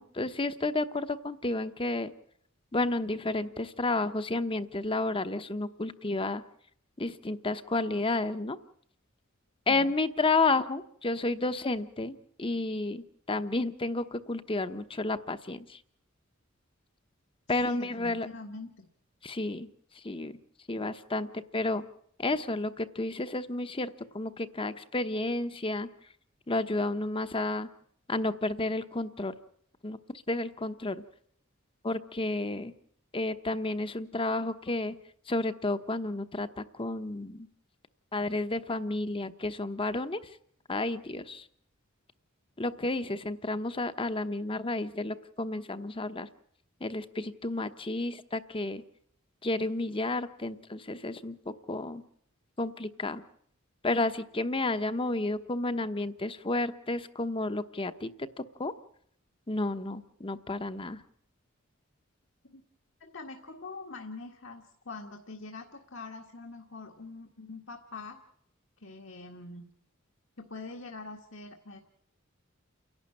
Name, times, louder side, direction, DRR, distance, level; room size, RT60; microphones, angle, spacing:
voice 1, 0.0-2.1 2.7-6.4 7.0-8.6 9.7-15.8 17.5-18.3 19.2-19.7 20.0-20.4 20.7-21.8 22.2-25.9 26.5-27.7 28.1-29.3 29.8-30.0 30.3-31.0 31.8-32.7 33.1-35.0 35.3-37.5 38.1-40.2 40.7-41.4 42.6-46.3 46.8-48.8 49.4-51.4 51.7-52.0 52.6-53.2 53.8-58.7 59.5-61.0, left 2 dB, 25° left, 11 dB, 1.0 m, -31 dB
voice 2, 17.6-18.9 62.5-62.6 63.0-68.2 68.8-69.6 70.4-71.8, left 3 dB, 65° left, 3 dB, 1.7 m, -44 dB
29.5 x 11.5 x 8.6 m, 0.67 s
head